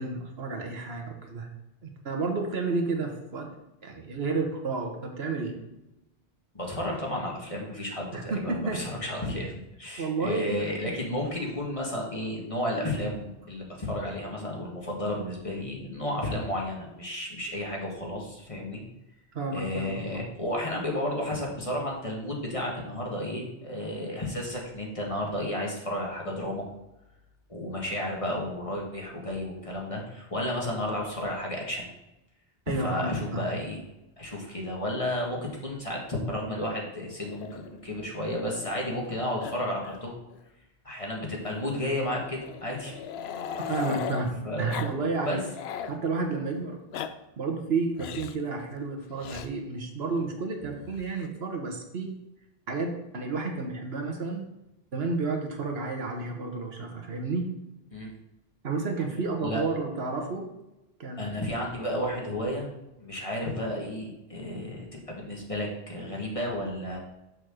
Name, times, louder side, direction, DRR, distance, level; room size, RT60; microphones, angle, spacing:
voice 1, 0.0-1.5 1.8-3.5 3.8-5.6 8.1-8.9 10.0-10.9 19.3-20.3 32.7-33.5 43.6-45.4 45.9-46.8 47.4-52.1 52.7-54.4 54.9-57.5 58.6-60.5 61.0-61.4, right 3 dB, 75° right, 2 dB, 1.4 m, -31 dB
voice 2, 6.5-9.5 9.8-18.8 19.5-26.6 27.5-31.9 32.7-33.8 34.2-40.1 40.8-43.0 43.7-43.8 44.4-44.7 45.2-45.4 57.9-58.1 59.4-59.6 61.2-62.7 63.0-67.0, left 1 dB, 35° left, -2 dB, 1.6 m, -32 dB
Growling, 37.2-39.1 39.4-39.6 39.8-40.0 40.3-40.4 41.4-44.3 44.7-45.0 45.3-46.0 46.7-47.1 48.0-48.4 49.2-49.5 50.6-51.3, left 7 dB, 80° left, 0.8 m, -38 dB
6.4 x 4.1 x 6.3 m, 0.95 s
omnidirectional pair, 1.1 m